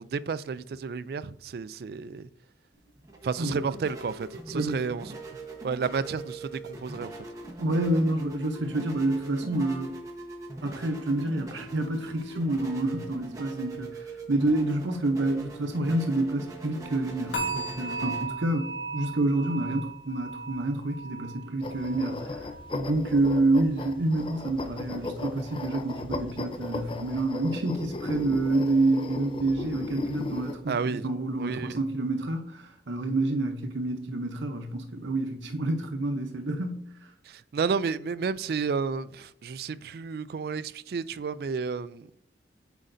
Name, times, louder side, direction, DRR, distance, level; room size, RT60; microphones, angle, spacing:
voice 1, 0.0-2.3 3.2-5.2 5.6-7.1 30.7-31.1 31.4-31.8 37.2-42.2, right 5 dB, 55° right, 0.3 m, -31 dB
sound 1, 2.7-21.0, right 2 dB, 20° right, 1.0 m, -42 dB
voice 2, 7.6-10.0 10.6-18.7 18.9-22.4 22.7-36.9, right 2 dB, 85° right, 0.7 m, -28 dB
sound 2, 17.3-24.4 24.7-25.1 25.6-25.7, right 3 dB, 85° left, 2.3 m, -38 dB
sound 3, 21.6-30.5, left 2 dB, 30° left, 0.4 m, -36 dB
8.2 x 4.9 x 2.6 m
head